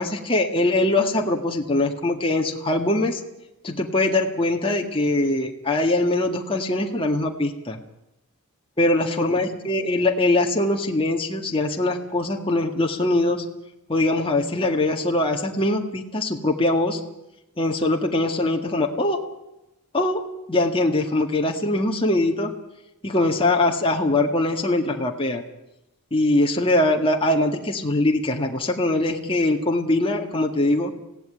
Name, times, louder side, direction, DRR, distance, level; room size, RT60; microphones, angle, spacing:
voice 1, 0.0-3.2 3.6-7.8 8.8-13.4 13.9-17.0 17.6-19.2 19.9-20.2 20.5-22.5 23.0-25.4 26.1-30.9, left 2 dB, 25° left, 1 dB, 1.9 m, -22 dB
26.0 x 17.0 x 9.1 m, 0.95 s
head